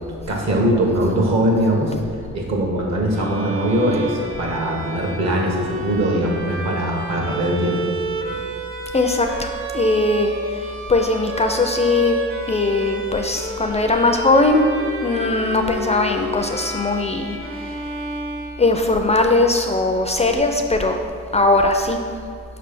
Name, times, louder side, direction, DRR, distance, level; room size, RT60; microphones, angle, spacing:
voice 1, 0.3-1.9 2.3-7.8, right 1 dB, 60° right, 0 dB, 1.3 m, -21 dB
Bowed string instrument, 3.1-19.1, right 1 dB, 45° right, 0.8 m, -31 dB
voice 2, 8.9-10.6 10.9-12.2 12.5-14.7 15.0-17.8 18.6-21.0 21.3-22.0, left 2 dB, 20° left, 4 dB, 0.4 m, -19 dB
5.7 x 3.3 x 5.2 m, 2.3 s
cardioid pair, 90°, 30 cm